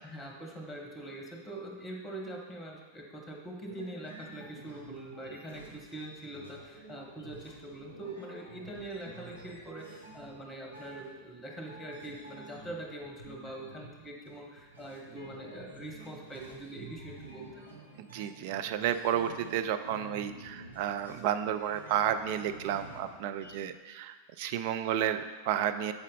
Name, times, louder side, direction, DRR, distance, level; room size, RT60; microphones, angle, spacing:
voice 1, 0.0-17.7, right 1 dB, 10° left, 0 dB, 1.2 m, -43 dB
sound 1, 3.7-11.4 11.7-23.6, right 2 dB, 80° right, 1.0 m, -51 dB
voice 2, 18.0-25.9, right 10 dB, 50° right, 9 dB, 0.3 m, -32 dB
7.0 x 4.1 x 3.9 m, 1.4 s
figure-of-eight pair, 90°, 0 cm